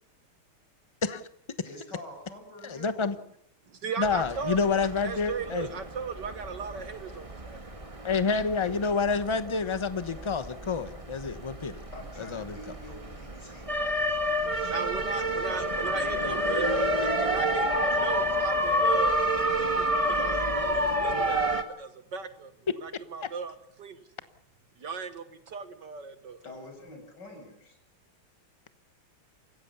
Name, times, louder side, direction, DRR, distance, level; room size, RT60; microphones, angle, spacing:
voice 1, 1.7-3.2 11.9-18.2 18.5-18.7 26.4-27.8, left 1 dB, 50° left, 4 dB, 7.3 m, -48 dB
voice 2, 2.6-3.1 4.0-5.7 8.0-11.8 12.2-12.6 23.2-23.3, left 4 dB, 25° left, 11 dB, 0.6 m, -28 dB
voice 3, 3.7-7.6 14.7-19.2 19.6-22.5 22.8-24.0 24.8-26.4, right 5 dB, 55° right, 10 dB, 1.8 m, -37 dB
sound 1, 4.0-21.6, equal, 15° right, 1.6 m, -29 dB
28.0 x 16.0 x 7.1 m, 0.72 s
omnidirectional pair, 2.3 m